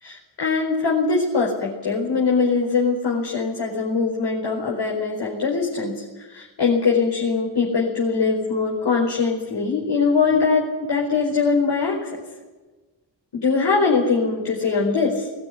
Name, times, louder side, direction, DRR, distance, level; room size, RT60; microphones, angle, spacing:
voice 1, 0.0-12.2 13.3-15.3, left 4 dB, 70° left, -3 dB, 4.8 m, -22 dB
20.5 x 17.0 x 9.9 m, 1.2 s
cardioid pair, 80°, 43 cm